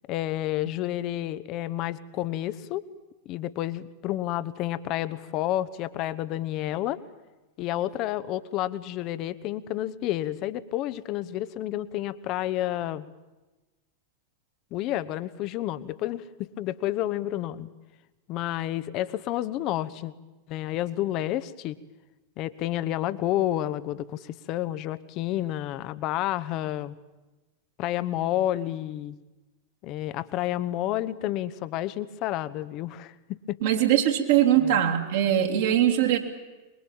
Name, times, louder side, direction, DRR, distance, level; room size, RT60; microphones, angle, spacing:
voice 1, 0.1-2.8 3.2-7.0 7.6-13.1 14.7-17.7 18.3-20.1 20.5-21.7 22.4-26.9 27.8-29.2 29.8-33.6 34.6-34.8, left 13 dB, 40° left, 15 dB, 1.0 m, -30 dB
voice 2, 33.6-36.2, right 11 dB, 55° right, 3 dB, 2.9 m, -21 dB
24.0 x 21.5 x 8.9 m, 1.1 s
figure-of-eight pair, 90°, 0 cm